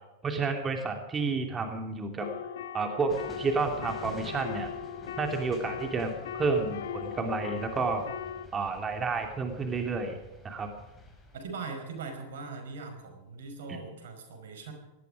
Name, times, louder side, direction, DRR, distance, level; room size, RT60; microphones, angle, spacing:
voice 1, 0.2-2.3 2.7-4.7 5.2-8.1 8.5-10.2 10.4-10.7 13.7-13.8, right 4 dB, 25° right, 4 dB, 2.9 m, -30 dB
sound 1, 2.2-8.5, left 8 dB, 75° left, 1.3 m, -39 dB
sound 2, 3.1-11.5, left 1 dB, 10° left, 5.9 m, -50 dB
voice 2, 11.3-14.7, right 4 dB, 75° right, 6 dB, 5.1 m, -40 dB
19.0 x 13.5 x 5.0 m, 1.0 s
hypercardioid pair, 105°, 0 cm